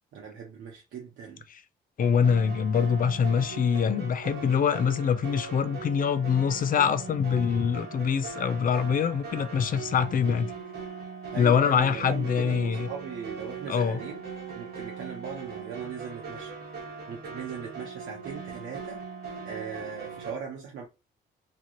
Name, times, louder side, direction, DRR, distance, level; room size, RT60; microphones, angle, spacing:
voice 1, 0.1-1.4 11.3-14.2 14.5-16.5 17.1-19.0 19.4-20.9, right 6 dB, 75° right, 0.8 m, -39 dB
voice 2, 2.0-10.5 11.4-12.9 13.7-14.0, left 7 dB, 45° left, 0.5 m, -24 dB
sound 1, 2.0-20.3, right 5 dB, 55° right, 1.2 m, -40 dB
2.9 x 2.4 x 3.0 m
cardioid pair, 90°, 20 cm